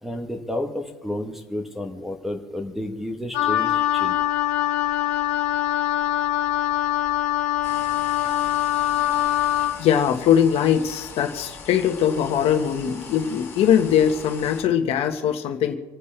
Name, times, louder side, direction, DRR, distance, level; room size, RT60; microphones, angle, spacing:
voice 1, 0.0-4.2, left 1 dB, ahead, 5 dB, 1.2 m, -31 dB
Wind instrument woodwind instrument, 3.3-9.8, left 13 dB, 75° left, 1.7 m, -23 dB
sound 1, 7.6-14.6, left 5 dB, 20° left, 2.5 m, -41 dB
voice 2, 9.8-15.7, left 9 dB, 50° left, 4 dB, 1.5 m, -21 dB
28.0 x 9.5 x 3.4 m, 1.2 s
cardioid pair, 155°, 13 cm